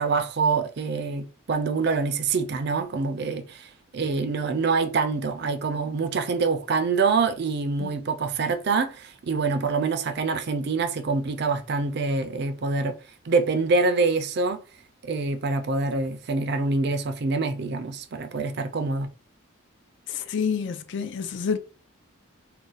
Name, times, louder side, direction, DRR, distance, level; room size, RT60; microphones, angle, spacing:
voice 1, 0.0-13.0 13.3-14.6 15.0-19.1, right 4 dB, 50° right, 0.4 m, -25 dB
voice 2, 20.1-21.6, left 6 dB, 55° left, 0.4 m, -28 dB
2.4 x 2.2 x 3.9 m
head